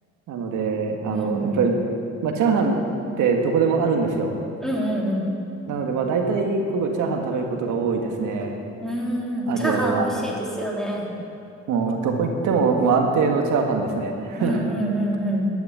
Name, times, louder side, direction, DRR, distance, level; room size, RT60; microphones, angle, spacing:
voice 1, 0.3-1.9 2.2-2.8 3.2-4.3 5.7-8.6 9.5-10.1 11.7-14.6, right 4 dB, 80° right, 2 dB, 1.7 m, -23 dB
voice 2, 1.1-1.6 4.6-5.3 8.8-11.1 14.4-15.5, right 1 dB, ahead, -4 dB, 3.8 m, -26 dB
12.5 x 10.5 x 8.6 m, 2.6 s
cardioid pair, 90°, 30 cm